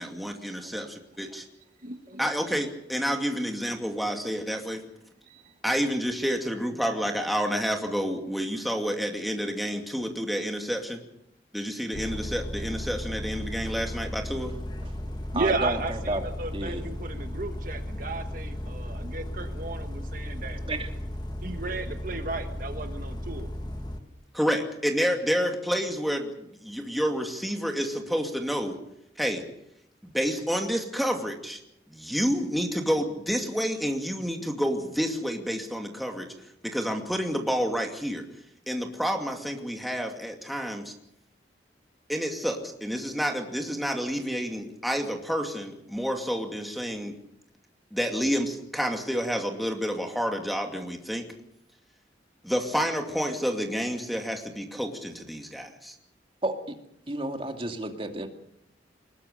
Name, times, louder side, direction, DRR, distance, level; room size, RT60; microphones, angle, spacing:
voice 1, 0.0-1.4 2.2-4.8 5.6-11.0 11.5-14.5 24.3-28.8 29.2-29.4 30.0-31.6 31.9-36.3 36.6-38.2 38.7-40.9 42.1-47.1 47.9-51.2 52.4-55.9, equal, ahead, 2 dB, 2.5 m, -29 dB
voice 2, 1.8-2.2 5.3-5.5 15.3-20.6 21.4-23.5, right 3 dB, 50° right, 6 dB, 1.4 m, -34 dB
Bus, 11.9-24.0, left 1 dB, 25° left, 1.8 m, -35 dB
voice 3, 15.3-16.2 16.5-16.8 20.7-20.9 56.4-56.8 57.1-58.3, right 1 dB, 30° right, 5 dB, 2.3 m, -31 dB
23.0 x 20.5 x 6.8 m, 0.78 s
head